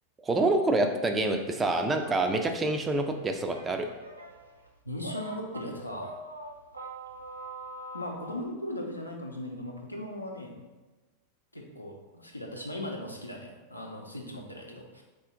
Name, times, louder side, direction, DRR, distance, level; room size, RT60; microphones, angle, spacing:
voice 1, 0.2-3.9, right 2 dB, 15° right, 5 dB, 0.4 m, -27 dB
sound 1, 2.0-8.5, right 1 dB, 85° right, 0.4 m, -44 dB
voice 2, 4.8-6.2 7.9-10.6 11.5-15.0, left 1 dB, 85° left, 0 dB, 0.6 m, -38 dB
4.1 x 2.5 x 3.7 m, 1.2 s
figure-of-eight pair, 90°, 0 cm